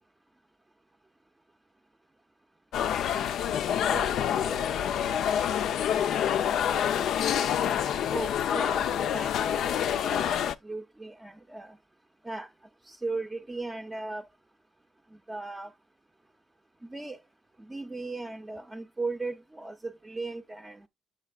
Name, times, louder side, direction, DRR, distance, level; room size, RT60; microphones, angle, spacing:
sound 1, 2.7-10.5, left 9 dB, 75° left, 0.4 m, -27 dB
voice 1, 4.5-4.9 8.1-11.8 12.2-12.5 12.9-14.2 15.3-15.7 16.9-17.2 17.7-20.9, right 3 dB, 15° right, 0.5 m, -37 dB
8.3 x 5.7 x 2.3 m
cardioid pair, 90°, 0 cm